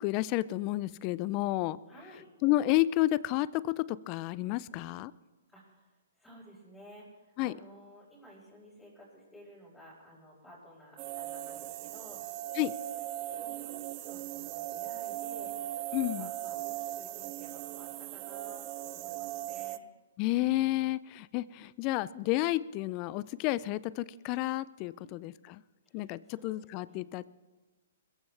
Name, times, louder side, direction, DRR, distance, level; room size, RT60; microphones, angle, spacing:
voice 1, 0.0-1.8 2.4-5.1 7.4-7.5 12.6-12.8 15.9-16.3 20.2-25.6 25.9-27.3, left 16 dB, 35° left, 20 dB, 0.5 m, -31 dB
voice 2, 1.9-2.3 4.7-4.9 5.5-5.9 6.2-12.3 13.3-19.8 21.9-22.1 25.0-25.2 25.8-27.1, equal, 5° left, -8 dB, 5.3 m, -54 dB
sound 1, 11.0-19.8, right 14 dB, 35° right, 0.5 m, -39 dB
22.0 x 14.5 x 3.4 m, 1.2 s
hypercardioid pair, 130°, 0 cm